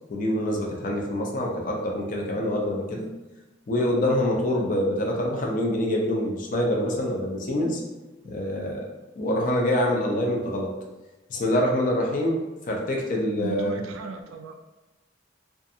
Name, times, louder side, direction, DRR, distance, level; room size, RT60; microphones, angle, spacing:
voice 1, 0.1-3.1 3.7-7.8 8.2-8.9 9.2-10.7 11.3-12.4 12.7-13.8, left 1 dB, 40° left, 0 dB, 0.4 m, -25 dB
voice 2, 13.4-14.6, right 4 dB, 85° right, 5 dB, 0.3 m, -36 dB
2.5 x 2.4 x 2.6 m, 1.1 s
head